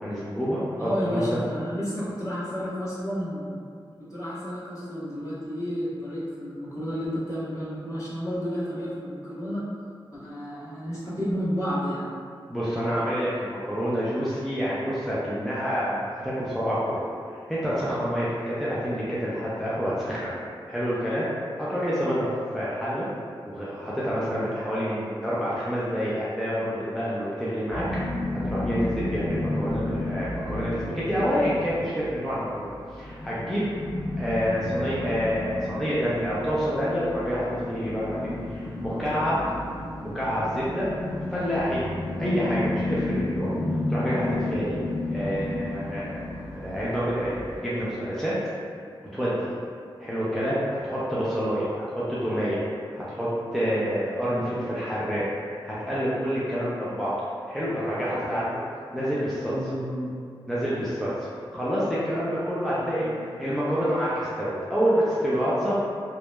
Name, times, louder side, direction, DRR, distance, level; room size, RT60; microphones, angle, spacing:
voice 1, 0.0-1.4 12.5-20.3 20.7-21.3 21.6-23.1 23.4-28.1 28.4-33.7 34.2-39.3 40.0-40.9 41.3-43.5 43.9-44.8 45.1-46.2 46.5-48.3 49.1-49.5 50.0-52.6 52.9-55.3 55.6-57.1 57.5-58.6 58.9-59.5 60.5-65.7, equal, ahead, -9 dB, 0.4 m, -28 dB
voice 2, 0.8-3.6 4.1-9.6 10.1-12.1 58.1-58.4 59.4-60.1 62.7-63.2, equal, 35° left, -11 dB, 1.0 m, -31 dB
sound 1, 27.7-47.6, left 2 dB, 85° left, 1.1 m, -32 dB
2.8 x 2.1 x 2.2 m, 2.2 s
cardioid pair, 65°, 9 cm